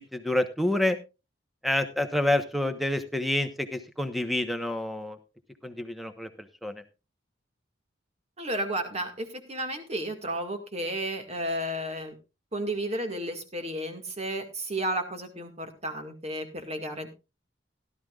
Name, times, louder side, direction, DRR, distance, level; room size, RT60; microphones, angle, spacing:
voice 1, 0.1-1.0 1.6-5.2 5.6-6.3 6.6-6.8, left 1 dB, ahead, 8 dB, 1.1 m, -28 dB
voice 2, 8.4-12.2 12.5-17.1, right 1 dB, 35° right, 6 dB, 2.1 m, -32 dB
17.0 x 12.5 x 2.4 m, 0.28 s
head